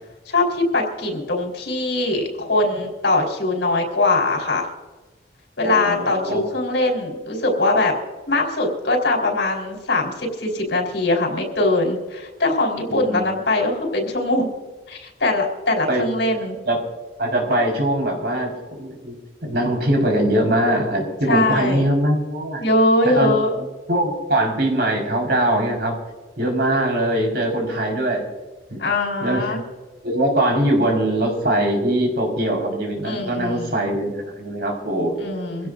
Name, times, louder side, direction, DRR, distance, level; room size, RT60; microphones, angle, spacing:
voice 1, 0.3-4.7 5.6-7.9 8.3-14.5 14.9-16.6 21.3-21.9 22.6-23.5 28.8-29.6 33.0-33.7 35.2-35.7, left 2 dB, 80° left, 1 dB, 4.3 m, -21 dB
voice 2, 5.6-6.4 12.9-13.2 15.9-16.8 17.2-19.2 19.4-22.6 23.0-23.4 23.9-25.9 26.4-28.2 28.7-28.8 29.2-29.6 30.0-35.2 35.6-35.7, right 1 dB, 60° right, 0 dB, 4.8 m, -22 dB
25.0 x 16.5 x 2.6 m, 1.2 s
head